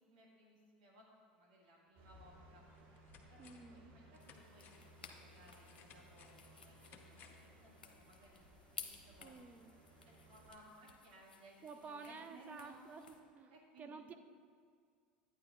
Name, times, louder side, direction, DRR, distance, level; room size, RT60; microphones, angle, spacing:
voice 1, 0.1-1.1 1.3-2.6 3.3-8.4 8.8-9.3 10.0-12.8 13.5-14.0, right 1 dB, 70° right, -4 dB, 1.7 m, -62 dB
sound 1, 2.0-10.5, right 1 dB, 55° right, 1.4 m, -62 dB
sound 2, 2.1-2.2 2.7-3.8 4.1-7.5 7.9-8.0, left 6 dB, 45° left, 0.8 m, -63 dB
voice 2, 3.4-3.9 9.2-9.8 11.6-14.1, right 4 dB, 30° right, 8 dB, 0.6 m, -52 dB
sound 3, 4.2-13.2, left 5 dB, 85° left, 0.7 m, -57 dB
11.5 x 9.2 x 2.3 m, 2.1 s
hypercardioid pair, 80°, 5 cm